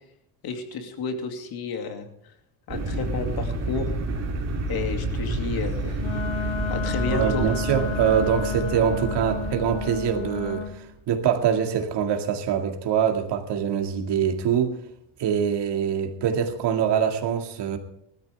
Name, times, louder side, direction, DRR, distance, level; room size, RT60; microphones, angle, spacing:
voice 1, 0.4-2.1 2.7-3.9 4.7-6.0 6.7-7.4, left 4 dB, 50° left, 2.5 m, -31 dB
sound 1, 2.7-10.9, right 2 dB, 30° right, 2.8 m, -29 dB
Wind instrument woodwind instrument, 5.9-10.7, left 5 dB, 70° left, 3.4 m, -32 dB
voice 2, 7.1-14.8 15.2-17.8, right 8 dB, 55° right, 2.2 m, -24 dB
20.0 x 13.5 x 3.5 m
cardioid pair, 155°, 49 cm